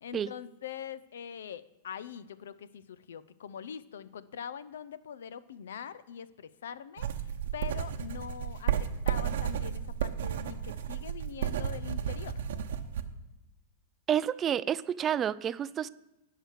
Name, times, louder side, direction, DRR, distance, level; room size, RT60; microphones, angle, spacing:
voice 1, 0.0-12.5, left 8 dB, 85° left, 17 dB, 0.5 m, -43 dB
sound 1, 7.0-13.0, right 9 dB, 75° right, 0.8 m, -33 dB
voice 2, 14.1-15.9, right 9 dB, 25° right, 17 dB, 0.3 m, -29 dB
11.0 x 4.9 x 6.4 m, 0.96 s
hypercardioid pair, 130°, 0 cm